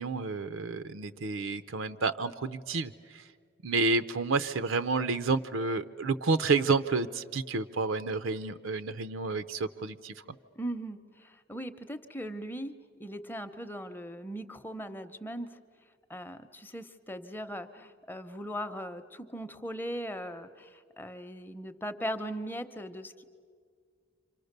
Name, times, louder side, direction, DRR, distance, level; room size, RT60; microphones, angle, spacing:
voice 1, 0.0-3.2 3.6-10.1, right 4 dB, 80° right, 12 dB, 0.6 m, -30 dB
voice 2, 10.6-12.7 13.0-15.5 16.1-23.2, equal, 10° left, 8 dB, 0.7 m, -39 dB
29.0 x 26.0 x 6.7 m, 2.1 s
head